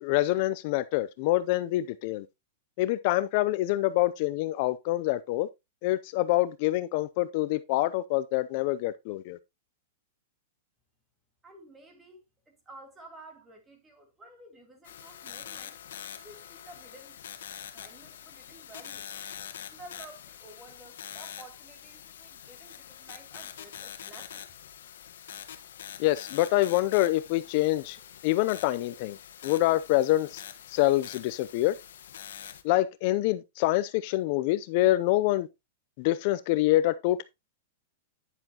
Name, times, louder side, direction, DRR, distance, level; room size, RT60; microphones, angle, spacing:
voice 1, 0.0-2.3 2.8-5.5 5.8-9.4 26.0-28.0 28.2-29.2 29.4-30.4 30.7-31.8 32.6-35.5 36.0-37.2, left 16 dB, 50° left, 0.5 m, -26 dB
voice 2, 11.4-15.8 16.2-17.2 17.7-19.1 19.7-24.5, right 2 dB, 15° right, 3.1 m, -52 dB
sound 1, 14.8-32.6, left 9 dB, 80° left, 1.3 m, -45 dB
9.9 x 7.1 x 2.9 m
hypercardioid pair, 140°, 0 cm